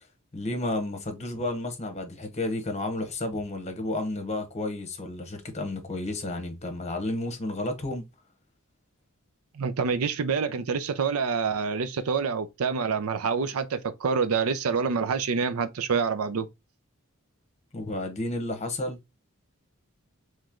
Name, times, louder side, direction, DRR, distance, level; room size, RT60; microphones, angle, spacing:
voice 1, 0.3-8.1 17.7-19.0, left 2 dB, 30° left, 1.0 m, -31 dB
voice 2, 9.6-16.5, right 5 dB, 85° right, 0.5 m, -27 dB
3.2 x 3.1 x 3.6 m
head